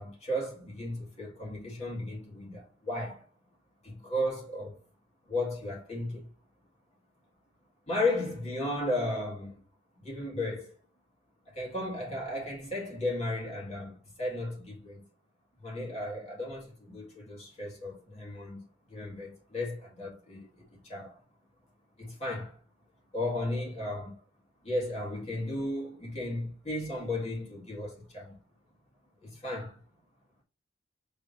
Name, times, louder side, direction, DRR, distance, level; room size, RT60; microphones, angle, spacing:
voice 1, 0.0-3.3 3.8-4.8 5.3-6.3 7.9-9.6 10.0-10.7 11.5-15.0 15.6-21.2 22.0-22.6 23.1-24.2 24.6-28.4 29.2-29.8, left 1 dB, 35° left, 1.7 m, -35 dB
5.5 x 3.4 x 2.5 m
head